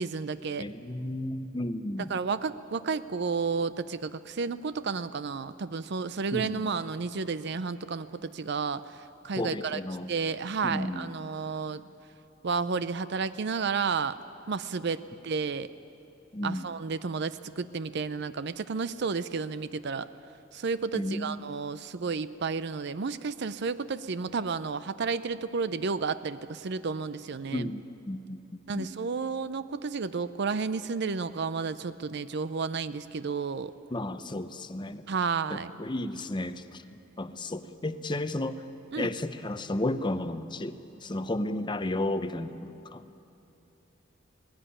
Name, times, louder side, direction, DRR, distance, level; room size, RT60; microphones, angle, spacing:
voice 1, 0.0-0.7 2.1-8.8 9.2-9.8 10.1-11.8 12.4-14.1 14.5-15.7 16.4-20.1 20.5-27.7 28.7-33.7 35.1-35.7 38.9-39.1, right 5 dB, 60° right, 14 dB, 0.5 m, -31 dB
voice 2, 0.6-2.1 6.3-6.7 9.3-10.1 10.6-11.2 16.3-16.6 20.9-21.4 27.5-28.9 33.9-35.1 35.5-38.6 39.0-43.0, left 1 dB, 25° left, 11 dB, 0.7 m, -33 dB
19.0 x 16.5 x 9.9 m, 2.9 s
head